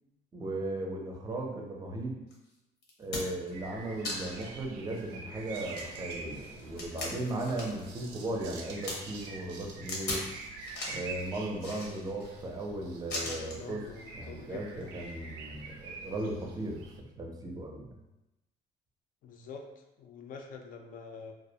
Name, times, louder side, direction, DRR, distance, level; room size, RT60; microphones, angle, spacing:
voice 1, 0.3-2.1 3.0-10.2 10.9-13.8 14.1-17.9, right 2 dB, 20° right, 0 dB, 0.4 m, -37 dB
sound 1, 2.3-2.4 2.8-3.5 4.0-4.5 5.0-5.1 5.5-7.9 8.2-9.0 9.9-10.3 10.6-11.1 11.6-12.3 13.1-13.6 14.7-14.9, left 2 dB, 85° left, 0.7 m, -38 dB
sound 2, 3.5-17.0, right 4 dB, 90° right, 0.4 m, -46 dB
voice 2, 13.1-14.8 16.0-16.2 19.2-19.6 20.0-21.3, left 5 dB, 55° left, 3 dB, 0.4 m, -46 dB
2.3 x 2.1 x 2.7 m, 0.96 s
cardioid pair, 110°, 17 cm